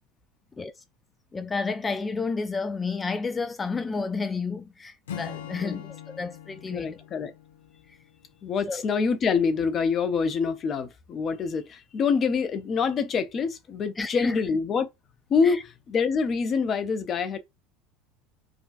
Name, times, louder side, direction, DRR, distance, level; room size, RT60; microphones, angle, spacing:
voice 1, 1.3-7.0 7.9-8.0 8.7-8.8 14.0-14.4 15.4-15.6, left 4 dB, 20° left, 0.3 m, -31 dB
Acoustic guitar / Strum, 5.1-8.6, left 9 dB, 75° left, 0.5 m, -42 dB
voice 2, 6.7-7.3 8.4-14.9 15.3-17.4, left 5 dB, 35° left, 0.7 m, -26 dB
5.0 x 2.3 x 2.4 m
figure-of-eight pair, 70°, 0 cm